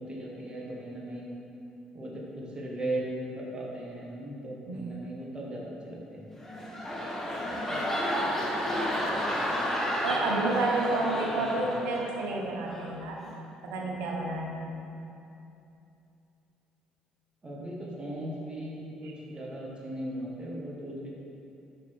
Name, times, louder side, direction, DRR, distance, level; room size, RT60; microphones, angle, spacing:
voice 1, 0.0-1.4 1.9-3.0 3.3-6.3 11.3-12.0 17.4-21.1, right 1 dB, 30° right, -3 dB, 1.6 m, -38 dB
voice 2, 4.7-5.0 7.4-7.8 10.0-13.3 13.6-14.8 19.0-19.1, right 2 dB, 70° right, -1 dB, 1.1 m, -31 dB
sound 1, 6.3-12.3 12.7-13.0, equal, 10° left, 1.5 m, -31 dB
8.7 x 5.3 x 3.6 m, 2.8 s
hypercardioid pair, 55°, 3 cm